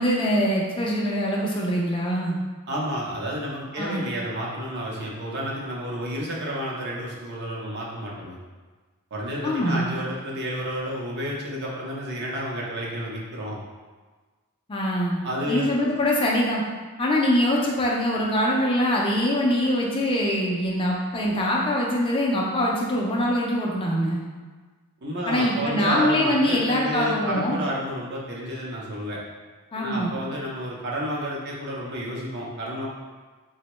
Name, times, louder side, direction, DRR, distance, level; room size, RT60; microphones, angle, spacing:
voice 1, 0.0-2.4 3.8-4.0 9.4-10.0 14.7-16.6 17.0-24.2 25.3-27.6 29.7-30.2, left 1 dB, 25° left, -2 dB, 0.3 m, -23 dB
voice 2, 2.7-8.4 9.1-13.6 15.2-15.7 25.0-29.2 29.7-32.9, equal, 50° right, -4 dB, 0.6 m, -30 dB
3.6 x 2.1 x 3.0 m, 1.4 s
head